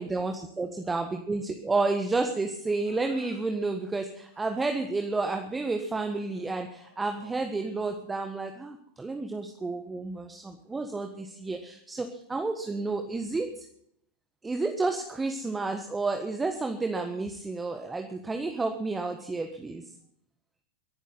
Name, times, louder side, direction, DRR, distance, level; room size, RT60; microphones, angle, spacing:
voice 1, 0.0-13.6 14.4-19.8, right 3 dB, 10° right, 5 dB, 1.4 m, -31 dB
sound 1, 2.8-3.4 4.3-4.8 6.3-8.6, left 2 dB, 85° left, 7.9 m, -57 dB
23.0 x 12.0 x 4.1 m, 0.70 s
figure-of-eight pair, 90°, 0 cm